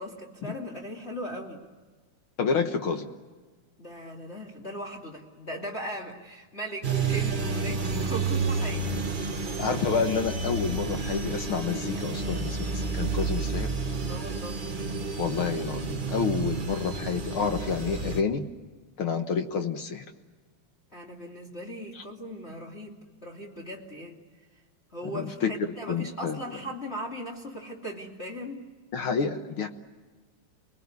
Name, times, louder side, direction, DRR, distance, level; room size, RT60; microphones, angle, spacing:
voice 1, 0.0-1.6 3.8-9.0 14.0-14.6 20.9-24.2 24.9-28.6, equal, 20° left, -2 dB, 2.8 m, -38 dB
voice 2, 2.4-3.1 9.6-13.7 15.2-18.5 19.0-20.1 22.0-22.1 25.1-26.4 28.9-29.7, left 6 dB, 55° left, 6 dB, 1.8 m, -29 dB
sound 1, 6.8-18.2, right 4 dB, 70° right, 0.4 m, -30 dB
29.0 x 20.5 x 9.6 m, 1.4 s
omnidirectional pair, 3.4 m